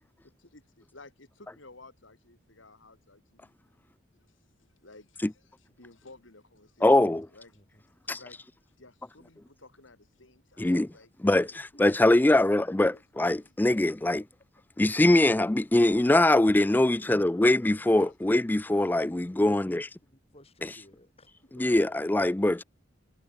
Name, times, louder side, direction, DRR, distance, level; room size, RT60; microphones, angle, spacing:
voice 1, 0.2-3.5 4.1-4.4 4.8-7.5 8.0-8.4 8.8-11.6 12.9-13.5 17.6-18.1 21.5-22.0, left 2 dB, 70° left, 3.8 m, -55 dB
voice 2, 6.8-7.3 8.1-8.2 10.6-10.9 11.2-11.5 11.8-14.2 14.8-19.9 21.6-22.6, left 1 dB, 10° left, 0.3 m, -22 dB
voice 3, 7.5-7.8 11.5-12.0 20.0-21.5, left 1 dB, 30° left, 6.6 m, -57 dB
head